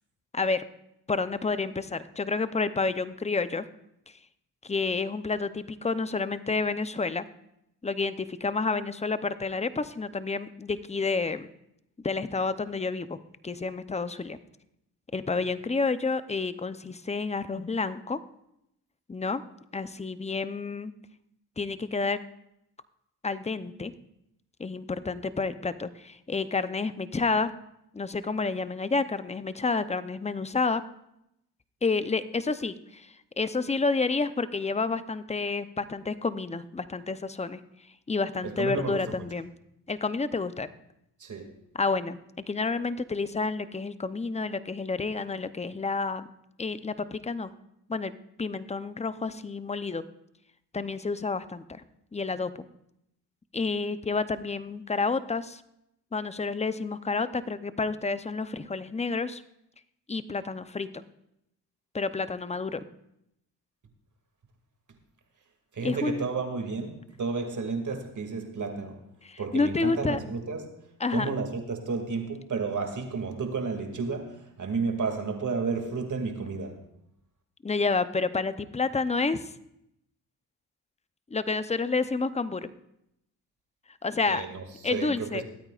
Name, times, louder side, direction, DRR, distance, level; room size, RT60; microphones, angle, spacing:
voice 1, 0.3-0.6 1.1-3.7 4.6-7.2 7.8-11.5 12.0-13.2 13.4-14.4 15.1-18.2 19.1-19.4 19.7-20.9 21.6-22.2 23.2-23.9 24.6-27.5 27.9-30.8 31.8-37.6 38.1-39.5 39.9-40.7 41.7-42.2 42.5-46.3 46.6-47.5 47.9-48.1 48.4-50.0 50.7-51.8 52.1-52.5 53.5-55.6 56.1-59.4 60.1-61.0 61.9-62.8 65.8-66.2 69.2-70.2 71.0-71.3 77.6-79.4 81.3-82.7 84.0-84.5 84.8-85.4, left 4 dB, 15° left, 13 dB, 0.7 m, -29 dB
voice 2, 38.4-39.0 41.2-41.5 65.7-69.0 69.4-70.6 71.1-76.8 84.3-85.4, right 4 dB, 50° right, 4 dB, 2.4 m, -32 dB
22.5 x 8.9 x 2.5 m, 0.79 s
cardioid pair, 65°, 39 cm